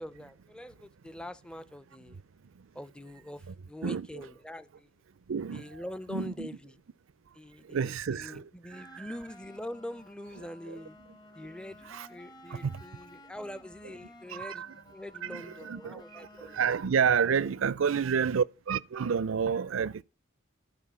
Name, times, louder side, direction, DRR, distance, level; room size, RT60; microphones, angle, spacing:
voice 1, 0.0-2.2 2.7-4.9 5.5-6.8 7.4-11.0 11.4-14.6 14.9-16.6 17.4-17.5, left 1 dB, 5° left, 0.4 m, -44 dB
voice 2, 5.3-5.6 6.1-6.5 7.7-8.3 11.9-12.1 12.6-12.7 14.4-14.7 15.3-15.9 16.6-20.0, right 6 dB, 80° right, 0.5 m, -29 dB
sound 1, 8.7-17.5, left 1 dB, 20° left, 0.8 m, -54 dB
12.5 x 4.8 x 6.9 m
head